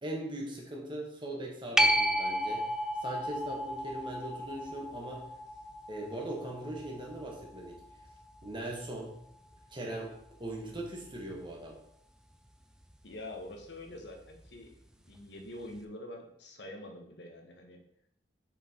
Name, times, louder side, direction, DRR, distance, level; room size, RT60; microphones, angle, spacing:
voice 1, 0.0-2.7 3.0-5.2 5.9-7.8 8.4-9.2 9.7-10.1 10.4-11.8, right 1 dB, 25° right, -1 dB, 1.4 m, -40 dB
sound 1, 1.8-8.9 14.5-14.6, equal, 5° right, 0.4 m, -33 dB
voice 2, 13.0-14.7 15.1-17.8, left 1 dB, 70° left, 2 dB, 1.1 m, -45 dB
6.6 x 4.5 x 4.4 m, 0.75 s
head